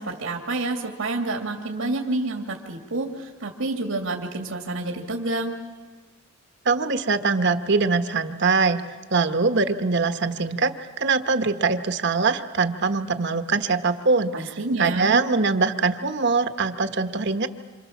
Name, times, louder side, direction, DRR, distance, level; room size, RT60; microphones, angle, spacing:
voice 1, 0.0-5.6 14.3-15.2, right 2 dB, 80° right, 2 dB, 2.4 m, -28 dB
voice 2, 6.6-8.8 9.1-17.5, right 4 dB, 55° right, 9 dB, 1.3 m, -23 dB
27.5 x 27.0 x 7.2 m, 1.4 s
head